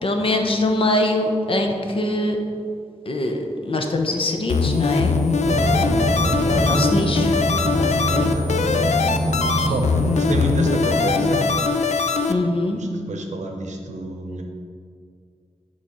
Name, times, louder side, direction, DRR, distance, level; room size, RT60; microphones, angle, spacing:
voice 1, 0.0-2.4 3.1-5.1 6.4-7.3 7.7-8.4 9.5-9.7 12.3-12.8, left 1 dB, 50° left, 3 dB, 0.7 m, -23 dB
sound 1, 4.5-12.3, left 4 dB, 75° left, 0.4 m, -22 dB
sound 2, 5.4-11.6, equal, 40° right, 0.9 m, -24 dB
voice 2, 8.2-9.4 9.6-11.5 12.7-14.4, right 2 dB, 85° right, 3 dB, 0.7 m, -29 dB
6.6 x 3.2 x 5.5 m, 2.2 s
wide cardioid pair, 90°, 12 cm